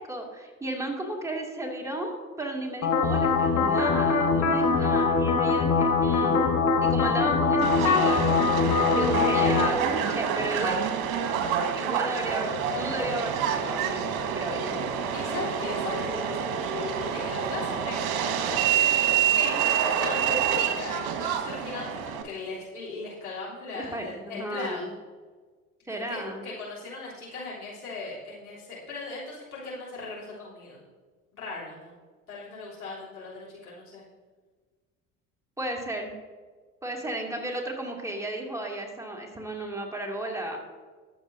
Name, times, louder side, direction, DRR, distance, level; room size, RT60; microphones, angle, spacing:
voice 1, 0.0-8.2 8.5-10.8 11.7-14.0 14.3-14.8 23.8-24.9 25.9-26.4 35.6-36.1 36.8-40.6, right 1 dB, 5° right, -1 dB, 2.6 m, -34 dB
sound 1, 2.8-9.7, left 4 dB, 40° left, 2.1 m, -23 dB
voice 2, 4.6-5.0 8.6-8.9 15.1-24.9 25.9-30.8 31.3-32.0 32.3-34.0, left 3 dB, 85° left, -7 dB, 3.7 m, -38 dB
Subway metro underground, 7.6-22.2, right 8 dB, 55° right, 1.5 m, -27 dB
20.5 x 7.9 x 2.8 m, 1.4 s
figure-of-eight pair, 65°, 43 cm